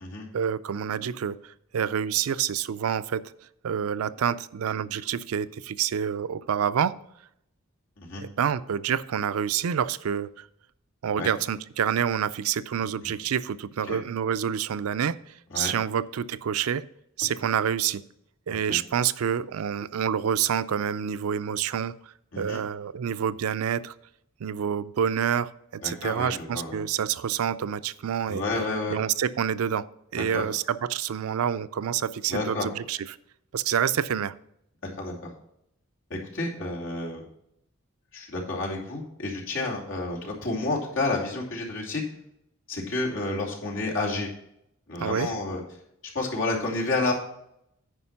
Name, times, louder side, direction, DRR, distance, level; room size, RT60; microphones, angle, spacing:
voice 1, 0.3-1.4 1.7-3.2 3.6-6.9 8.2-10.5 11.0-15.2 15.5-16.8 17.2-18.0 18.5-21.9 22.4-23.9 24.4-28.4 28.9-29.8 30.1-33.0 33.5-34.3 45.0-45.3, right 8 dB, 85° right, 15 dB, 0.4 m, -27 dB
voice 2, 25.8-26.8 28.3-28.9 30.2-30.4 32.3-32.7 35.0-35.3 36.3-37.2 38.1-42.0 42.7-44.3 44.9-45.6 46.1-47.1, left 2 dB, 65° left, -3 dB, 2.6 m, -30 dB
9.8 x 5.1 x 5.7 m, 0.76 s
head